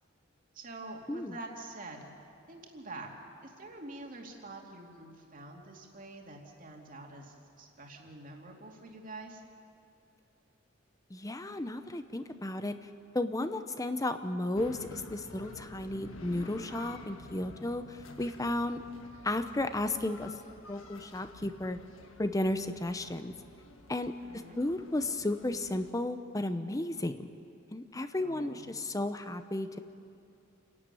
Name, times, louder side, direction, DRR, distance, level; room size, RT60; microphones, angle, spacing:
voice 1, 0.5-2.1 2.5-3.1 3.4-9.4 24.2-24.6 28.2-28.7, right 2 dB, 40° right, 1 dB, 2.6 m, -46 dB
voice 2, 11.1-12.8 13.1-18.8 19.2-20.3 20.7-21.8 22.2-23.3 23.9-24.1 24.6-27.3 27.7-29.8, left 1 dB, 15° left, 9 dB, 0.7 m, -33 dB
sound 1, 14.5-25.9, left 2 dB, 80° left, 1.5 m, -50 dB
29.0 x 11.5 x 9.2 m, 2.5 s
head